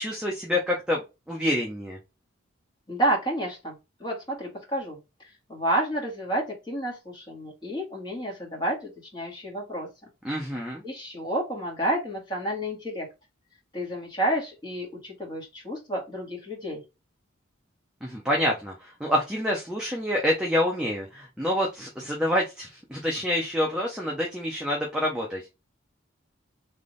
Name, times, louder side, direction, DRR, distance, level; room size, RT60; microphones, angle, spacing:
voice 1, 0.0-2.0 10.2-10.8 18.0-25.5, left 1 dB, 5° right, -2 dB, 0.8 m, -27 dB
voice 2, 2.9-5.0 5.5-9.9 10.8-13.1 13.7-16.8, right 1 dB, 20° left, -3 dB, 1.9 m, -30 dB
3.5 x 3.3 x 3.9 m, 0.26 s
head